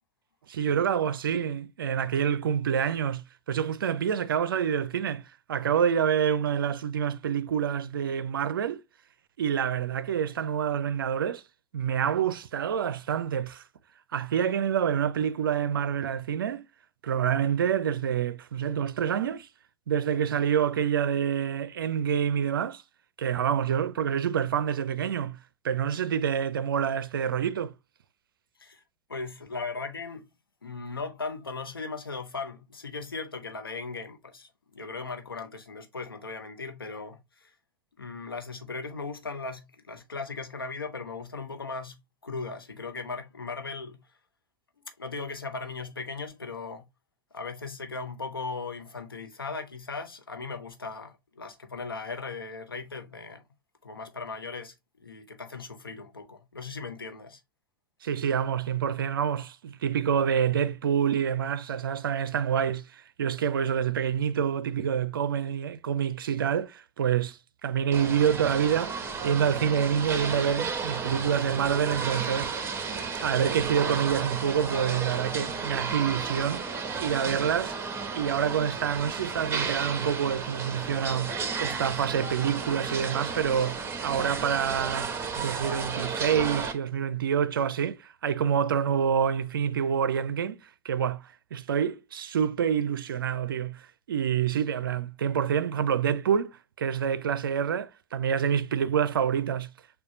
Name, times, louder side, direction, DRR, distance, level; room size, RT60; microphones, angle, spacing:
voice 1, 0.5-5.2 5.5-8.8 9.4-11.4 11.7-13.6 14.1-16.6 17.0-19.5 19.9-22.8 23.2-25.4 25.6-27.7 58.0-72.5 73.2-76.6 77.0-77.8 78.1-81.3 81.6-90.6 90.8-91.2 91.5-99.7, right 8 dB, 75° right, 0.5 m, -27 dB
voice 2, 29.1-30.3 30.6-37.5 38.0-42.0 42.2-44.0 45.0-46.9 47.3-53.4 53.8-57.4, left 4 dB, 85° left, 0.7 m, -38 dB
sound 1, 67.9-86.7, right 5 dB, 20° right, 1.0 m, -33 dB
6.4 x 2.3 x 2.7 m
figure-of-eight pair, 85°, 12 cm